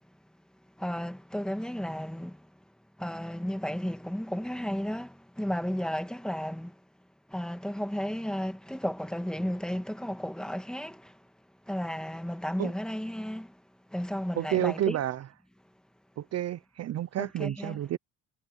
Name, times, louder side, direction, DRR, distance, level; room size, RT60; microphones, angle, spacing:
voice 1, 0.8-2.5 3.0-6.8 7.3-11.2 11.7-13.6 13.9-15.0 17.2-17.8, equal, ahead, 1.7 m, -33 dB
voice 2, 14.4-15.2 16.2-18.0, right 12 dB, 50° right, 0.6 m, -30 dB
cardioid pair, 130°, 32 cm